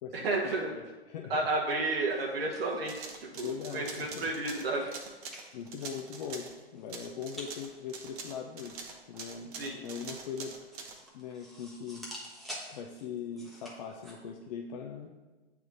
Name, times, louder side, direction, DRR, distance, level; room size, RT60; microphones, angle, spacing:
voice 1, 0.1-0.8 1.3-5.0 9.5-9.8, right 2 dB, 65° right, 0 dB, 1.0 m, -32 dB
voice 2, 0.7-1.4 3.4-4.3 5.5-8.8 9.1-10.5 11.1-12.1 12.7-15.1, left 7 dB, 40° left, 0 dB, 0.6 m, -40 dB
sound 1, 2.0-14.1, equal, ahead, 0.9 m, -50 dB
sound 2, 2.8-6.6 6.9-11.0, right 5 dB, 35° right, 0.8 m, -44 dB
7.9 x 3.5 x 3.8 m, 1.2 s
hypercardioid pair, 125°, 32 cm